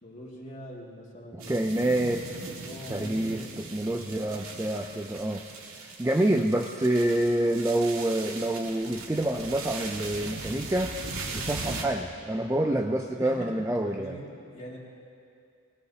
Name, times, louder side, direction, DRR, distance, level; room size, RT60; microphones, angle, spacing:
voice 1, 0.0-2.3 2.6-3.5 11.2-11.5 13.2-14.8, equal, 30° left, -3 dB, 2.2 m, -43 dB
voice 2, 1.3-2.2 2.9-5.4 6.0-11.0 11.3-14.1, right 1 dB, 10° right, 2 dB, 0.4 m, -27 dB
sound 1, 1.4-11.8, right 3 dB, 80° right, 1.9 m, -39 dB
20.0 x 19.5 x 2.8 m, 2.4 s
head